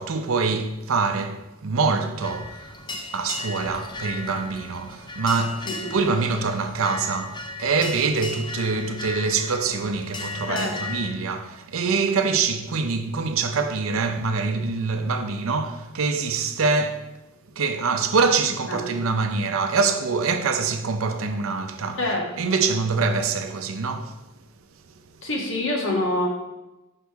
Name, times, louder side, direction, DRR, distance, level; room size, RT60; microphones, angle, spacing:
voice 1, 0.0-2.8 3.1-17.1 17.6-22.0 22.4-24.2, right 4 dB, 80° right, 0.6 m, -25 dB
sound 1, 2.2-11.1, left 3 dB, 20° left, 0.5 m, -36 dB
voice 2, 10.4-10.8 18.7-18.8 22.0-22.5 25.2-26.3, left 1 dB, 65° left, 1.5 m, -26 dB
6.3 x 5.3 x 3.4 m
head